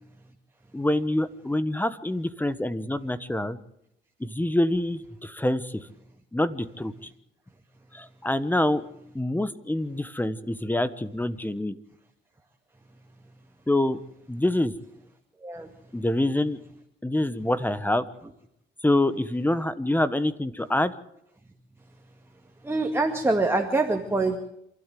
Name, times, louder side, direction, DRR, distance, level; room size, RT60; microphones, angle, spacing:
voice 1, 0.7-3.6 4.2-5.9 6.3-6.9 7.9-8.8 9.1-11.8 13.7-14.0 14.3-14.7 15.9-16.6 17.0-18.0 18.8-20.9, left 1 dB, 10° left, 14 dB, 1.2 m, -26 dB
voice 2, 22.7-24.4, right 2 dB, 10° right, 3 dB, 2.1 m, -24 dB
27.5 x 12.5 x 7.7 m, 0.76 s
cardioid pair, 90°, 20 cm